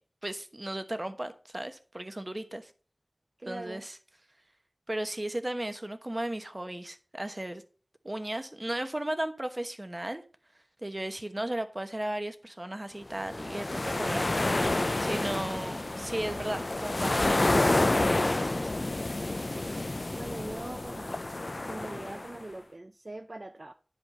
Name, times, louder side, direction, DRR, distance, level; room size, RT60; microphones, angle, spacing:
voice 1, 0.2-2.7 3.4-3.9 4.9-7.6 8.0-10.2 10.8-14.8 15.0-18.7, right 1 dB, 30° right, 1.0 m, -35 dB
voice 2, 3.4-3.9 15.0-15.3 20.1-21.2 21.6-23.7, right 2 dB, 50° right, 0.6 m, -42 dB
sound 1, 13.2-22.4, left 2 dB, 55° left, 0.5 m, -29 dB
10.5 x 5.2 x 5.4 m
wide cardioid pair, 50°, 0 cm